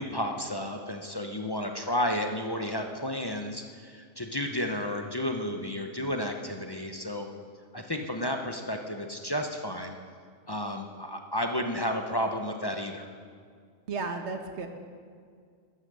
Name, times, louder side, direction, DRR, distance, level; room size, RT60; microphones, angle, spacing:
voice 1, 0.0-7.3 7.7-10.0 10.5-13.1, left 1 dB, 25° left, 4 dB, 0.7 m, -32 dB
voice 2, 13.9-14.7, right 4 dB, 60° right, 5 dB, 1.3 m, -33 dB
13.0 x 9.7 x 6.7 m, 2.1 s
omnidirectional pair, 1.4 m